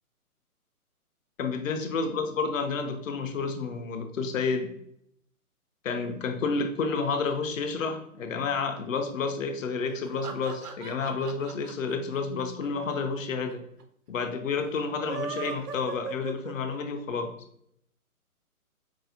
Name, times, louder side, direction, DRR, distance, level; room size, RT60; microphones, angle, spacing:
voice 1, 1.4-4.7 5.8-13.6 14.1-17.3, left 4 dB, 60° left, 7 dB, 0.6 m, -30 dB
sound 1, 9.9-13.2 13.5-13.6 13.8-13.9 14.9-17.0, right 5 dB, 85° right, 0.7 m, -38 dB
4.7 x 2.0 x 2.7 m, 0.70 s
figure-of-eight pair, 140°, 45 cm